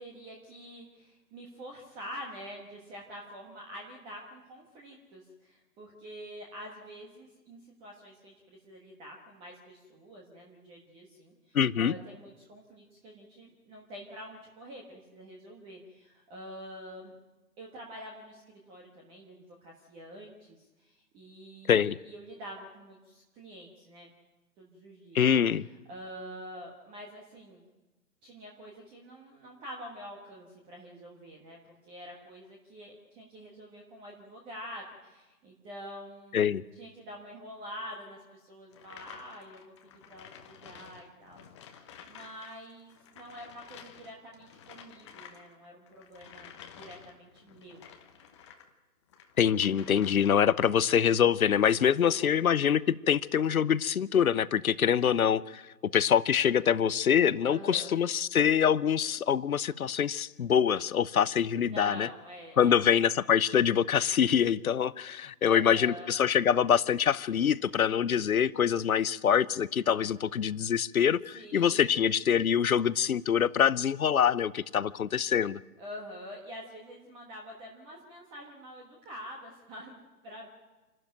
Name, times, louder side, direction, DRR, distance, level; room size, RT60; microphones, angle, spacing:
voice 1, 0.0-17.1 17.6-24.1 24.6-25.2 25.9-27.6 28.2-36.4 36.7-47.8 52.0-52.2 57.4-57.9 61.5-62.8 65.5-66.1 71.3-72.0 75.8-80.5, equal, 10° right, 0 dB, 1.3 m, -46 dB
voice 2, 11.5-11.9 21.7-22.0 25.1-25.7 36.3-36.6 49.4-55.6 55.9-62.1 62.6-75.6, left 8 dB, 60° left, 19 dB, 0.8 m, -25 dB
sound 1, 38.7-42.5 42.8-48.7 49.1-50.5, left 8 dB, 20° left, 1.0 m, -52 dB
27.5 x 12.5 x 9.0 m, 1.1 s
figure-of-eight pair, 150°, 49 cm